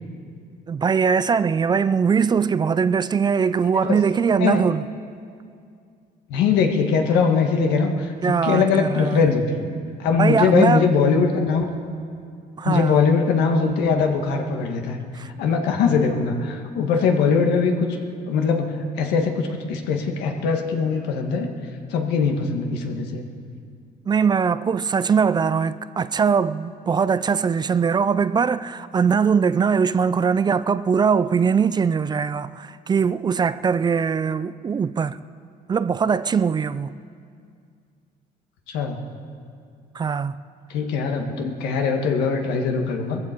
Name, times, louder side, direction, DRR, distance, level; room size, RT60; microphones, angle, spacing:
voice 1, 0.7-4.8 8.2-9.2 10.2-10.9 12.6-12.9 15.1-15.3 24.1-35.2 35.7-37.0 39.9-40.4, right 6 dB, 25° right, 0.3 m, -21 dB
voice 2, 6.3-9.6 10.0-11.7 12.6-15.0 15.4-18.0 18.3-21.5 21.9-23.2 38.7-39.0 40.7-43.2, left 5 dB, 90° left, 1.6 m, -21 dB
20.0 x 14.5 x 4.5 m
cardioid pair, 110°, 17 cm